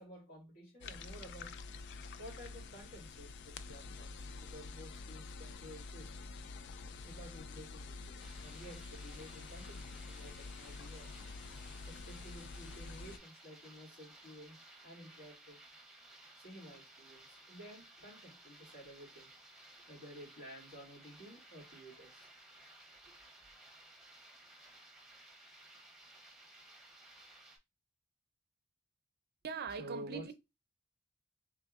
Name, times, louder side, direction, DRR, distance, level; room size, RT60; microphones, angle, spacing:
voice 1, 0.0-1.6 2.2-6.1 7.0-11.1 11.9-15.6 16.4-19.3 19.9-22.3 23.0-23.1 29.8-30.3, equal, 75° left, 2.5 m, -52 dB
sound 1, 0.8-13.2, left 4 dB, 55° left, 0.3 m, -48 dB
sound 2, 8.2-27.6, right 2 dB, ahead, 0.7 m, -58 dB
voice 2, 29.4-30.3, right 6 dB, 50° right, 0.4 m, -41 dB
3.5 x 3.4 x 2.4 m
head